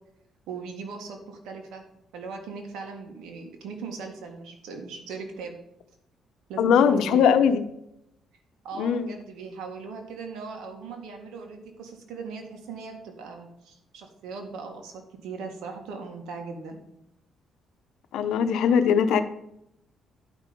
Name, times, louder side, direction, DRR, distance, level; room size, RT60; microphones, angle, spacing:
voice 1, 0.5-1.8 2.1-5.6 6.5-7.3 8.6-16.8, right 4 dB, 90° right, 3 dB, 1.9 m, -39 dB
voice 2, 6.6-7.6 8.8-9.1 18.1-19.2, left 7 dB, 85° left, 10 dB, 0.8 m, -20 dB
11.0 x 5.5 x 5.3 m, 0.80 s
cardioid pair, 90°, 0 cm